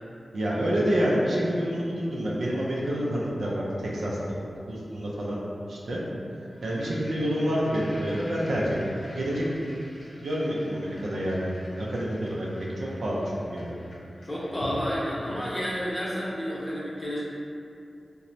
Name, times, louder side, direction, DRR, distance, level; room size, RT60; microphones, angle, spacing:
voice 1, 0.3-4.4 4.7-5.4 5.7-6.0 6.6-9.5 10.2-13.8, equal, 80° right, -5 dB, 0.4 m, -28 dB
sound 1, 6.5-15.8, equal, 70° left, 0.6 m, -47 dB
voice 2, 14.2-17.2, equal, 25° left, -8 dB, 0.8 m, -30 dB
3.0 x 2.1 x 2.5 m, 2.6 s
cardioid pair, 45°, 0 cm